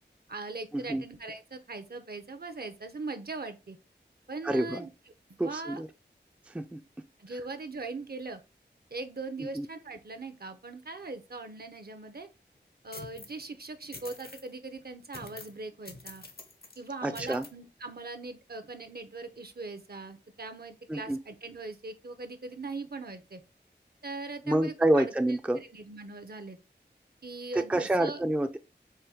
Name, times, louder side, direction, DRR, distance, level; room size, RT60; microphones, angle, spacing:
voice 1, 0.3-3.8 4.3-4.9 5.4-5.8 7.2-8.4 8.9-12.3 12.8-16.2 16.8-23.4 24.0-26.6 27.2-28.2, right 3 dB, 60° right, 0.7 m, -40 dB
voice 2, 4.4-4.9 5.4-5.9 6.5-6.8 9.4-9.7 17.0-17.5 20.9-21.2 24.5-25.6 27.5-28.6, right 1 dB, 5° right, 0.4 m, -28 dB
sound 1, 12.9-13.4 13.9-14.5 15.1-15.6 15.9-16.8 17.1-17.5, left 3 dB, 55° left, 0.7 m, -46 dB
4.6 x 2.6 x 3.4 m
wide cardioid pair, 55°, 18 cm